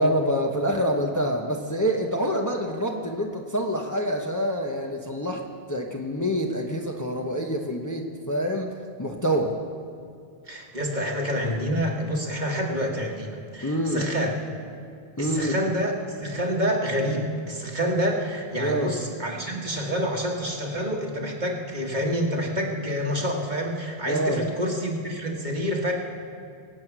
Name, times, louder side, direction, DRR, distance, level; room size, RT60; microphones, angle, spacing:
voice 1, 0.0-5.4 5.7-8.7 9.0-9.6 13.6-14.0 15.2-15.5 18.6-18.9 24.1-24.4, equal, 20° left, 1 dB, 0.9 m, -26 dB
voice 2, 10.4-14.4 15.2-25.9, equal, 45° right, 0 dB, 1.8 m, -27 dB
22.5 x 8.5 x 6.1 m, 2.3 s
omnidirectional pair, 1.1 m